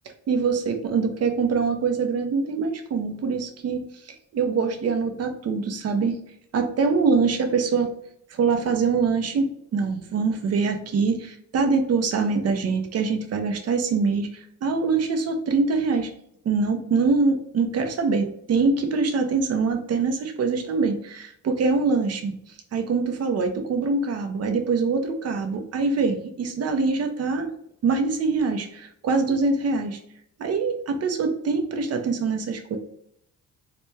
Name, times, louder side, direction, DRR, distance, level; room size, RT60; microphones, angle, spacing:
voice 1, 0.3-6.2 6.5-7.9 8.3-16.1 16.4-22.3 22.7-27.5 27.8-30.0 30.4-32.8, right 4 dB, 55° right, 5 dB, 0.8 m, -24 dB
4.1 x 2.3 x 3.2 m, 0.71 s
cardioid pair, 90°, 30 cm